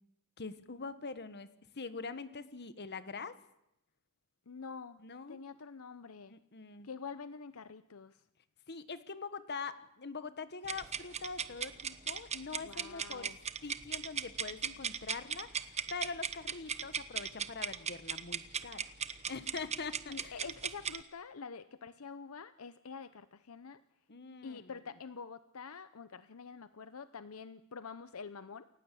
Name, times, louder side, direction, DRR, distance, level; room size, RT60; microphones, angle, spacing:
voice 1, 0.4-3.4 5.0-5.4 6.3-6.9 8.7-13.3 13.6-20.5 24.1-24.8, left 4 dB, 50° left, 13 dB, 1.4 m, -44 dB
voice 2, 4.5-5.0 5.3-6.3 6.8-8.2 12.6-13.4 20.1-23.8 24.4-28.7, left 5 dB, 75° left, 13 dB, 0.8 m, -47 dB
sound 1, 10.6-21.0, right 7 dB, 30° right, 1.1 m, -38 dB
29.0 x 15.0 x 8.5 m, 0.84 s
head